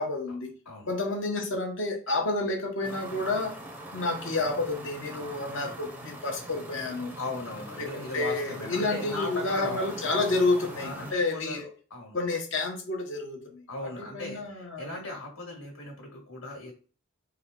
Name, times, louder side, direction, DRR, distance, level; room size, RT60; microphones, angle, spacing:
voice 1, 0.0-0.5 0.9-3.5 3.9-7.1 7.8-11.7 12.1-14.9, left 2 dB, 55° left, 2 dB, 0.9 m, -30 dB
sound 1, 2.8-11.1, right 1 dB, 10° right, 0.5 m, -42 dB
voice 2, 7.2-9.9 10.8-12.2 13.7-16.7, left 2 dB, 85° left, 0 dB, 1.7 m, -38 dB
4.0 x 2.3 x 3.6 m, 0.37 s
head